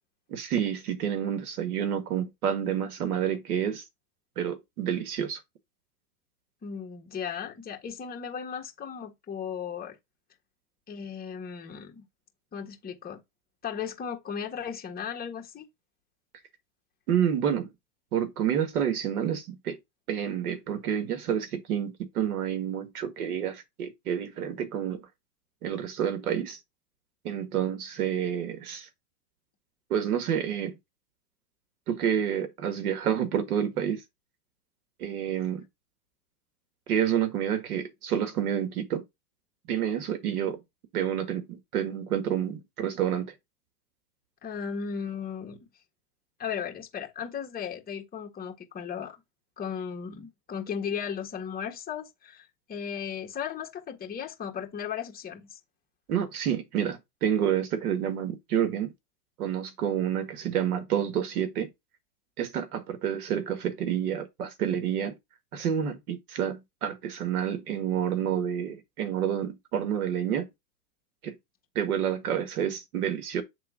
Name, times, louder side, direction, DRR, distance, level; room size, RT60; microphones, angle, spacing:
voice 1, 0.3-3.8 4.4-5.4 17.1-17.7 18.1-19.8 20.1-25.0 25.6-26.6 27.2-28.9 29.9-30.8 31.9-34.0 35.0-35.6 36.9-39.0 39.7-40.6 40.9-43.3 56.1-58.9 59.4-61.7 62.4-65.2 65.5-70.5 71.2-71.4 71.8-73.4, right 9 dB, 70° right, 1.8 m, -29 dB
voice 2, 6.6-10.0 10.9-12.1 12.5-13.2 13.6-15.7 44.4-45.7 46.4-49.2 49.6-55.6, left 7 dB, 20° left, 1.7 m, -36 dB
7.5 x 3.7 x 3.7 m
hypercardioid pair, 115°, 47 cm